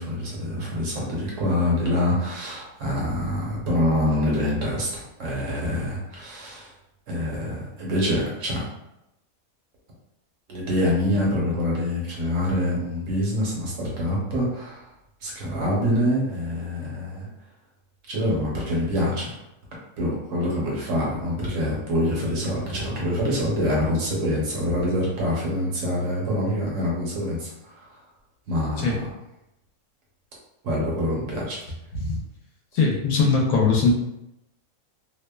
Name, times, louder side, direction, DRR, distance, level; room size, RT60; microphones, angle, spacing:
voice 1, 0.0-6.7 7.1-8.7 10.5-14.8 15.2-17.3 18.1-19.4 20.0-27.7 28.5-29.1 30.6-31.6, left 1 dB, 65° right, -4 dB, 1.1 m, -25 dB
voice 2, 32.7-33.9, left 4 dB, 75° left, -1 dB, 1.1 m, -20 dB
2.8 x 2.1 x 2.2 m, 0.87 s
omnidirectional pair, 1.5 m